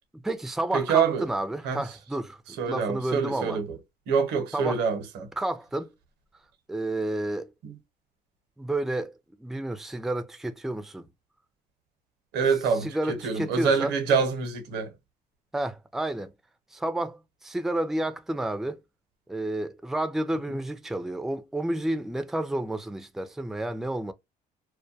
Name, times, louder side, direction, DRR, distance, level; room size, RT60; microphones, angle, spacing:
voice 1, 0.1-3.6 4.5-4.8 5.4-5.9 6.7-7.5 8.6-9.1 9.4-11.1 12.7-14.0 15.5-16.3 16.7-18.8 19.3-24.1, right 1 dB, ahead, 0.3 m, -30 dB
voice 2, 0.7-1.2 1.6-1.8 2.6-3.8 4.1-5.0 7.6-7.7 12.3-14.9, right 6 dB, 85° right, 0.8 m, -26 dB
2.2 x 2.2 x 2.5 m
cardioid pair, 110°, 17 cm